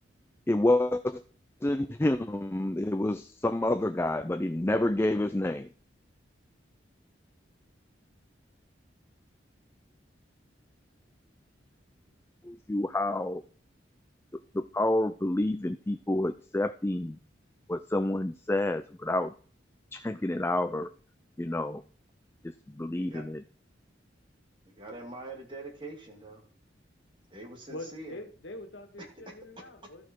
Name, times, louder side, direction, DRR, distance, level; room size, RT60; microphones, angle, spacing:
voice 1, 0.5-1.2 1.6-5.7 12.4-13.4 14.5-17.2 17.7-19.3 19.9-20.9 21.4-21.8 22.4-23.4, left 1 dB, 15° left, 10 dB, 0.4 m, -28 dB
voice 2, 24.7-26.4 27.3-28.2 29.0-29.3, right 2 dB, 25° right, 2 dB, 2.4 m, -44 dB
voice 3, 27.7-30.1, left 1 dB, 85° left, 5 dB, 1.8 m, -43 dB
13.0 x 6.3 x 4.6 m, 0.42 s
head